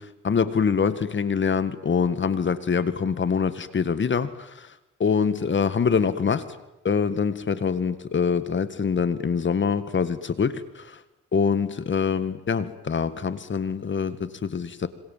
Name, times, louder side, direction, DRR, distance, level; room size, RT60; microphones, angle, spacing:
voice 1, 0.0-4.7 5.0-6.5 6.8-11.0 11.3-14.9, left 6 dB, 40° left, 13 dB, 2.0 m, -25 dB
27.5 x 25.0 x 7.6 m, 0.99 s
cardioid pair, 90°, 30 cm